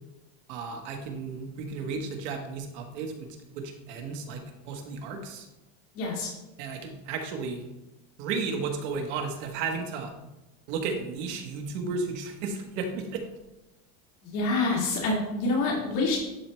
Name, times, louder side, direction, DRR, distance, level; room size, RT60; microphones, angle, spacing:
voice 1, 0.5-3.3 3.5-5.5 6.6-7.6 8.2-10.1 10.7-13.2, right 4 dB, 60° right, 4 dB, 1.4 m, -33 dB
voice 2, 5.9-6.3 14.2-16.2, left 3 dB, 80° left, -3 dB, 2.4 m, -27 dB
11.0 x 4.3 x 3.2 m, 0.98 s
supercardioid pair, 160°, 41 cm